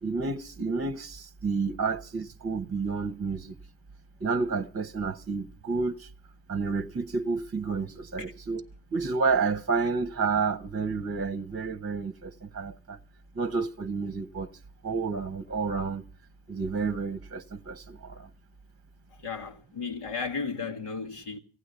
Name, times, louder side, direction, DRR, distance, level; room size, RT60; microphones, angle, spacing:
voice 1, 0.0-3.5 4.2-6.1 6.5-8.6 8.9-13.0 13.3-14.5 14.8-16.0 16.5-18.3, right 4 dB, 30° right, 0.9 m, -30 dB
voice 2, 19.2-21.4, left 5 dB, 90° left, 1.9 m, -34 dB
15.5 x 9.7 x 8.1 m
cardioid pair, 65°, 50 cm